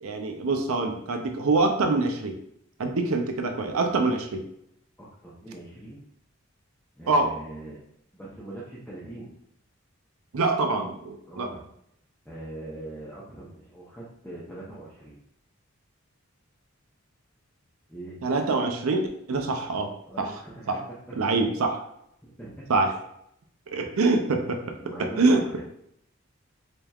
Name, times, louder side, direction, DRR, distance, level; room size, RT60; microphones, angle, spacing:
voice 1, 0.0-2.4 2.8-4.4 7.1-7.3 10.3-11.5 18.2-19.9 20.2-20.3 20.7-20.8 21.1-21.8 22.7-22.9 23.7-24.6 25.0-25.4, right 3 dB, 80° right, 4 dB, 0.6 m, -25 dB
voice 2, 5.0-6.0 7.0-7.8 8.1-9.3 11.3-11.6 12.2-15.2 17.9-18.2 19.3-19.7 20.1-20.7 22.4-22.6 24.8-25.6, right 2 dB, 5° left, -8 dB, 0.7 m, -42 dB
4.1 x 3.4 x 2.4 m, 0.73 s
head